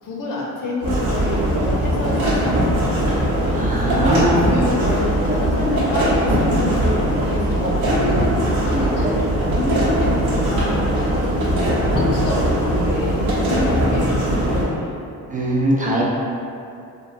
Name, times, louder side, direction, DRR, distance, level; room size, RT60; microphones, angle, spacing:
voice 1, 0.0-3.2 3.8-9.1 9.6-15.0, left 1 dB, 65° left, -4 dB, 0.7 m, -27 dB
sound 1, 0.8-14.6, right 1 dB, 90° right, 0.8 m, -20 dB
voice 2, 3.5-4.4 15.3-16.0, right 1 dB, 25° right, -5 dB, 0.3 m, -20 dB
2.9 x 2.2 x 2.4 m, 2.5 s
cardioid pair, 95°, 34 cm